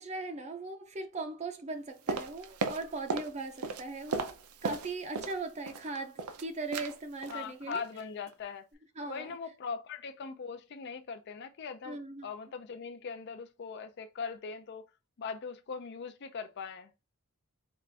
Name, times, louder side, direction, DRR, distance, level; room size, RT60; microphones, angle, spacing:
voice 1, 0.0-4.3 4.6-7.8 9.0-9.4 11.8-12.3, right 3 dB, 30° right, 0.5 m, -39 dB
sound 1, 2.1-3.3 3.6-5.4 5.7-6.4 6.7-6.9 7.2-7.4 7.7-8.0 8.3-8.4, right 4 dB, 85° right, 0.6 m, -35 dB
voice 2, 7.3-8.7 9.1-14.8 15.2-16.9, left 5 dB, 50° left, 0.4 m, -40 dB
4.6 x 2.5 x 3.3 m
head